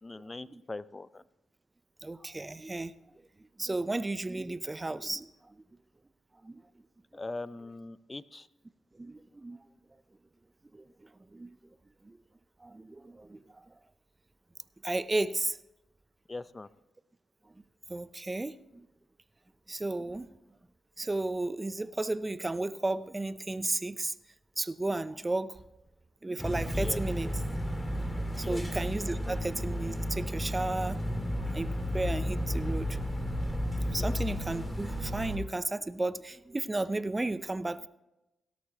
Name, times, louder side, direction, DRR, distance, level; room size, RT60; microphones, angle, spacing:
voice 1, 0.0-1.2 7.1-8.5 16.3-16.7 26.7-27.3 28.4-28.6 29.3-29.4 34.0-34.2, left 2 dB, 30° left, 17 dB, 0.6 m, -41 dB
voice 2, 2.0-2.9 3.6-5.5 6.4-6.6 9.0-9.6 10.7-11.6 12.0-12.2 12.6-13.6 14.8-15.6 17.9-18.9 19.7-20.3 21.0-24.1 24.6-25.6 26.2-27.3 28.4-31.0 31.5-33.0 33.8-37.9, right 2 dB, 25° right, 15 dB, 0.6 m, -34 dB
sound 1, 26.4-35.4, equal, 15° left, 2.4 m, -33 dB
17.5 x 13.0 x 2.9 m, 0.94 s
hypercardioid pair, 45°, 0 cm